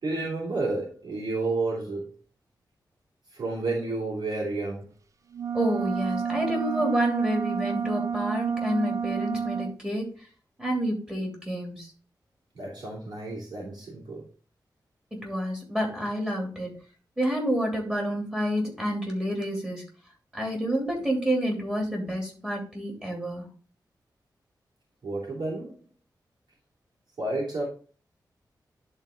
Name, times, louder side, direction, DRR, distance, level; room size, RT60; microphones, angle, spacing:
voice 1, 0.0-2.1 3.3-4.9 12.5-14.2 25.0-25.8 27.2-27.6, right 2 dB, 75° right, -4 dB, 2.9 m, -31 dB
sound 1, 5.3-9.8, right 6 dB, 45° right, 0.4 m, -30 dB
voice 2, 5.5-10.1 10.6-11.9 15.1-16.8 17.2-19.8 20.3-23.5, equal, 10° right, 0 dB, 2.9 m, -29 dB
11.0 x 4.1 x 3.8 m, 0.39 s
wide cardioid pair, 155°, 7 cm